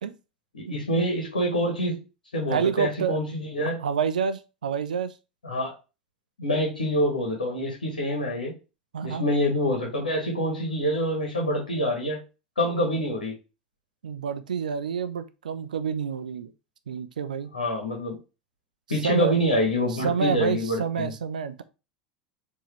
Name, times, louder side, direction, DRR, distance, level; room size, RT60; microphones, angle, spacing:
voice 1, 0.5-2.0 2.3-3.8 5.4-5.7 6.4-8.5 9.0-12.2 12.6-13.4 17.5-18.2 18.9-21.1, equal, 75° left, -1 dB, 1.4 m, -26 dB
voice 2, 2.5-3.2 3.6-5.2 8.9-9.2 14.0-16.5 16.9-17.5 18.9-19.3 19.9-21.6, right 6 dB, 70° right, 12 dB, 0.5 m, -28 dB
4.7 x 2.9 x 3.2 m, 0.29 s
figure-of-eight pair, 80°, 4 cm